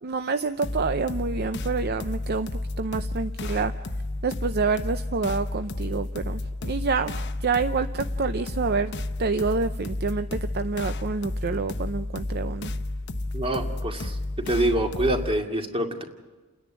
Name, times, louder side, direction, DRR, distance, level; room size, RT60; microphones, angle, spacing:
voice 1, 0.0-2.5 2.8-3.7 4.2-8.9 9.2-12.7, right 4 dB, 50° right, 10 dB, 0.6 m, -27 dB
sound 1, 0.6-15.4, left 2 dB, 50° left, 0.9 m, -32 dB
voice 2, 13.3-16.0, right 1 dB, 25° right, 3 dB, 2.2 m, -26 dB
30.0 x 10.5 x 8.8 m, 1.3 s
head